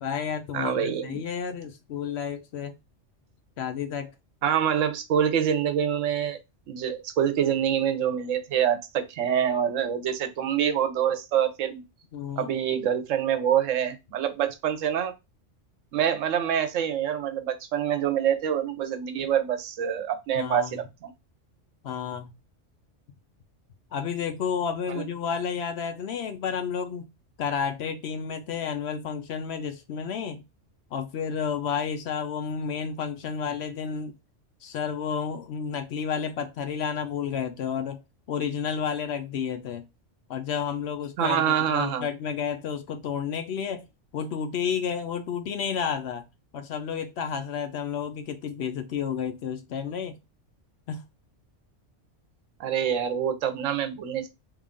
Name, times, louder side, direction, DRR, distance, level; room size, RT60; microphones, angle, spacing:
voice 1, 0.0-2.7 3.6-4.1 12.1-12.5 20.3-20.8 21.8-22.3 23.9-27.1 27.4-30.4 30.9-34.1 34.6-38.0 38.3-39.8 40.3-43.9 44.1-46.3 46.5-50.2 50.9-51.0, left 7 dB, 65° left, 0.8 m, -31 dB
voice 2, 0.5-1.2 4.4-6.4 6.7-11.8 12.4-15.1 15.9-21.1 24.9-25.0 41.2-42.1 52.6-54.3, right 9 dB, 90° right, 1.0 m, -26 dB
3.3 x 2.4 x 3.5 m
omnidirectional pair, 1.3 m